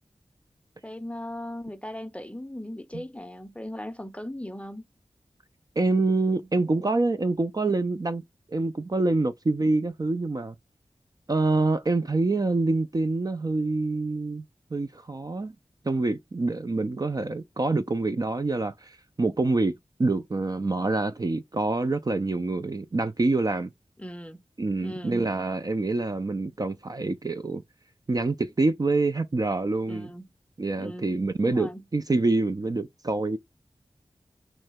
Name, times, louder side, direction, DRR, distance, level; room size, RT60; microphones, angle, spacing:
voice 1, 0.8-4.8 24.0-24.4 24.8-25.2 29.9-30.2 30.8-31.8, left 1 dB, 10° left, 0.6 m, -38 dB
voice 2, 5.8-8.2 8.5-10.5 11.3-14.4 14.7-15.5 15.8-23.7 24.6-27.6 28.1-30.1 30.6-33.4, right 3 dB, 35° right, 0.4 m, -26 dB
3.1 x 2.8 x 3.4 m
cardioid pair, 40°, 11 cm